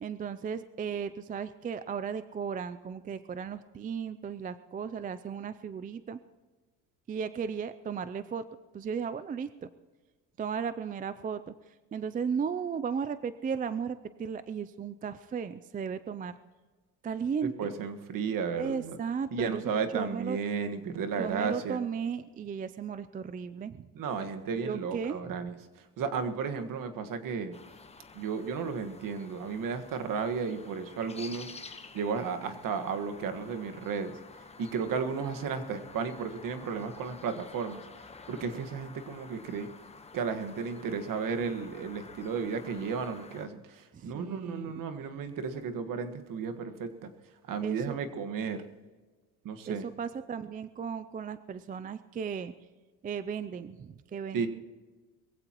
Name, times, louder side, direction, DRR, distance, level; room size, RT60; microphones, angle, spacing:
voice 1, 0.0-6.2 7.1-8.4 8.7-9.7 10.4-16.3 17.0-17.7 18.6-19.6 19.9-20.4 21.2-23.9 24.6-25.4 43.9-44.8 47.6-48.0 49.7-52.5 53.0-54.5, right 6 dB, 20° right, 13 dB, 0.4 m, -35 dB
voice 2, 17.6-19.0 19.3-21.8 23.9-25.5 26.0-27.6 28.1-31.6 31.9-34.1 34.6-37.8 38.3-39.7 40.1-47.1 47.5-48.6 49.4-49.8 54.3-54.5, right 5 dB, 55° right, 8 dB, 1.6 m, -33 dB
sound 1, 27.5-43.5, left 4 dB, 15° left, 1.0 m, -50 dB
22.0 x 16.0 x 3.0 m, 1.3 s
cardioid pair, 135°, 39 cm